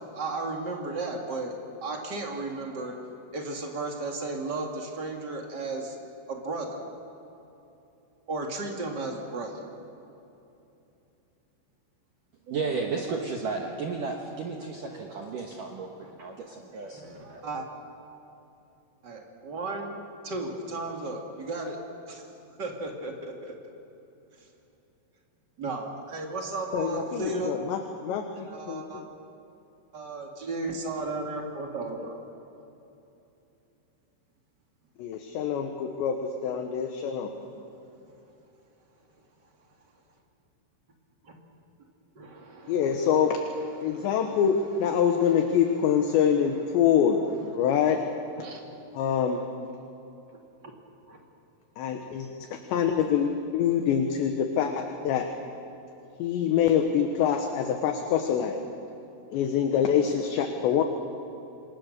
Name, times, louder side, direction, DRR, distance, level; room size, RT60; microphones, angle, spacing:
voice 1, 0.1-1.5 1.8-2.9 3.3-5.9 6.3-6.8 8.3-9.7 16.0-16.1 16.9-17.7 19.0-21.8 22.1-22.3 22.6-23.7 25.6-27.5 28.5-29.0 29.9-32.2 41.2-41.3 42.1-43.1 43.7-44.4 48.4-48.6 51.1-51.2, right 3 dB, 45° right, 1 dB, 1.3 m, -34 dB
voice 2, 12.5-17.5, right 4 dB, 70° right, 1 dB, 2.1 m, -33 dB
voice 3, 26.7-29.1 35.0-37.3 42.7-43.4 43.8-47.2 47.5-48.0 48.9-49.4 51.8-55.3 56.2-58.6 59.3-60.8, left 8 dB, 70° left, 5 dB, 3.1 m, -25 dB
28.0 x 24.0 x 6.6 m, 2.9 s
omnidirectional pair, 5.8 m